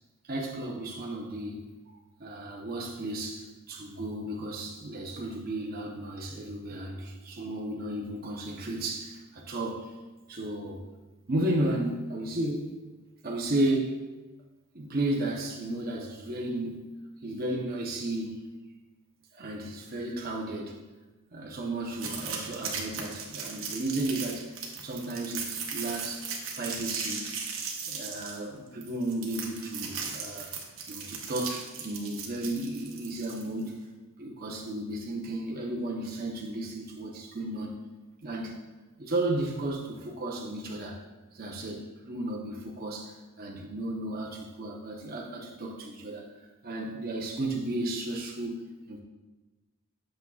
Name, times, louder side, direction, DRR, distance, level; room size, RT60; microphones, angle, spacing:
voice 1, 0.2-1.7 2.2-10.0 10.3-10.8 11.3-12.7 13.2-14.0 14.7-18.6 19.3-20.8 21.3-24.5 24.8-26.3 26.5-27.3 27.8-30.5 30.9-33.9 34.2-37.8 38.2-38.7 39.0-41.0 41.3-49.0, right 1 dB, 45° right, -2 dB, 0.8 m, -34 dB
sound 1, 22.0-33.7, right 5 dB, 65° right, 1.1 m, -37 dB
8.3 x 6.4 x 2.4 m, 1.2 s
head